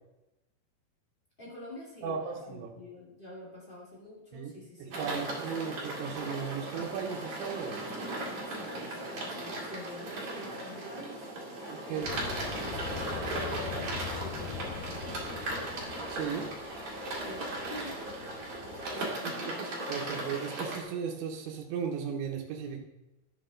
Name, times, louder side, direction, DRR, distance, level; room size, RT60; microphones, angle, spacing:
voice 1, 1.4-5.0 8.3-12.8 13.3-15.5 17.2-18.6 18.9-19.8, left 1 dB, 65° left, -6 dB, 0.5 m, -47 dB
voice 2, 2.0-2.7 4.3-4.5 4.8-7.8 11.7-12.1 16.1-16.5 19.2-22.8, right 7 dB, 85° right, 0 dB, 3.2 m, -36 dB
sound 1, 4.9-20.8, right 1 dB, 40° right, 2.7 m, -37 dB
sound 2, 12.0-19.0, left 9 dB, 80° left, 2.5 m, -43 dB
11.0 x 7.5 x 3.8 m, 0.96 s
omnidirectional pair, 5.1 m